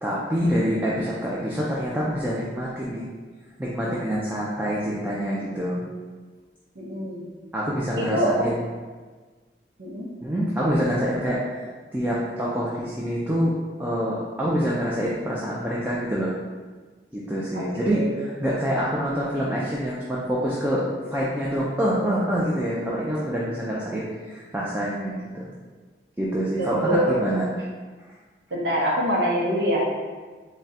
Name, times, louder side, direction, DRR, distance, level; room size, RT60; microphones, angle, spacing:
voice 1, 0.0-3.1 3.6-5.8 7.5-8.6 10.2-11.4 11.9-16.3 17.1-25.5 26.2-27.5, equal, 10° right, -6 dB, 0.4 m, -26 dB
voice 2, 6.8-7.3 8.0-8.5 9.8-10.1 17.5-18.1 26.6-27.2 28.5-29.8, equal, 75° right, -6 dB, 0.7 m, -25 dB
3.6 x 2.1 x 4.1 m, 1.4 s
head